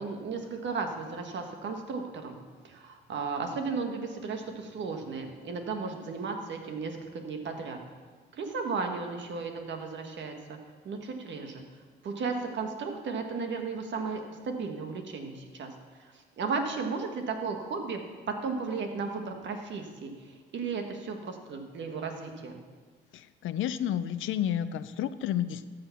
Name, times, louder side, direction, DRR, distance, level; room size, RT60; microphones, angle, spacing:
voice 1, 0.0-2.3 2.6-7.8 8.3-10.6 10.8-11.6 12.0-15.7 16.0-22.6, right 4 dB, 65° right, 4 dB, 1.6 m, -35 dB
voice 2, 23.1-25.7, left 10 dB, 80° left, 13 dB, 0.6 m, -31 dB
13.0 x 6.6 x 5.8 m, 1.4 s
cardioid pair, 90°, 20 cm